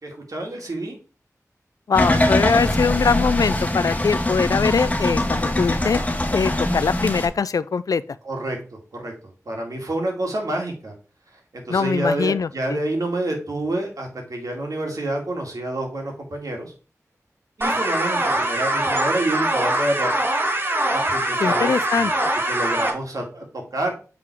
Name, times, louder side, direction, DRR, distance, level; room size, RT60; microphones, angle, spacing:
voice 1, 0.0-1.0 8.2-9.1 9.5-10.9 11.5-16.7 17.6-20.1 20.9-22.1 22.5-23.9, right 1 dB, 75° right, 2.2 m, -28 dB
voice 2, 1.9-6.0 6.3-8.0 11.7-12.8 21.4-22.1, left 5 dB, 85° left, 0.4 m, -22 dB
sound 1, 1.9-7.3, left 1 dB, 25° left, 1.1 m, -22 dB
sound 2, 17.6-22.9, right 1 dB, 35° right, 1.6 m, -23 dB
7.7 x 3.8 x 4.6 m
wide cardioid pair, 75°, 6 cm